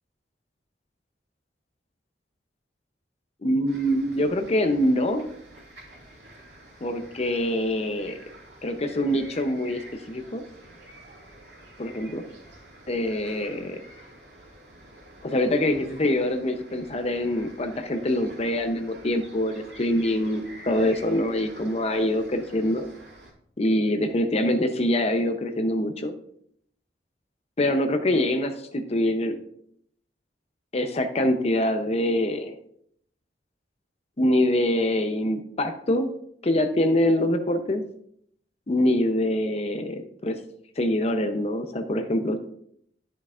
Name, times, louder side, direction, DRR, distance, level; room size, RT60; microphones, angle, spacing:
voice 1, 3.4-5.3 6.8-8.2 8.6-10.4 11.8-12.2 12.9-13.8 15.2-22.8 23.6-26.1 27.6-29.4 30.7-32.5 34.2-36.1 36.4-37.8 38.7-40.4 40.8-42.4, left 1 dB, 35° left, 7 dB, 0.7 m, -24 dB
sound 1, 3.7-23.3, right 1 dB, 70° right, 3.4 m, -48 dB
12.0 x 7.7 x 2.5 m, 0.68 s
head